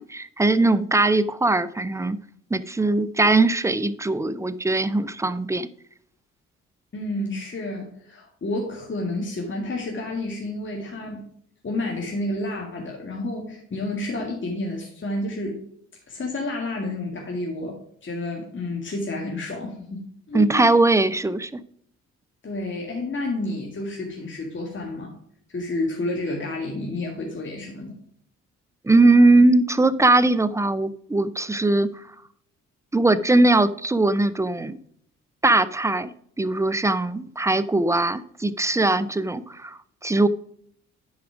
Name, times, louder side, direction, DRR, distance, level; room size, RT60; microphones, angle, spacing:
voice 1, 0.0-2.2 2.5-5.7 20.3-21.6 28.8-31.9 32.9-34.8 35.4-36.1 36.4-40.3, right 2 dB, 10° right, 15 dB, 0.6 m, -20 dB
voice 2, 6.9-11.2 11.6-15.5 16.1-20.0 20.3-20.7 22.4-25.1 25.5-27.9, left 2 dB, 35° left, -1 dB, 2.1 m, -30 dB
10.5 x 4.9 x 5.0 m, 0.65 s
hypercardioid pair, 50°, 35 cm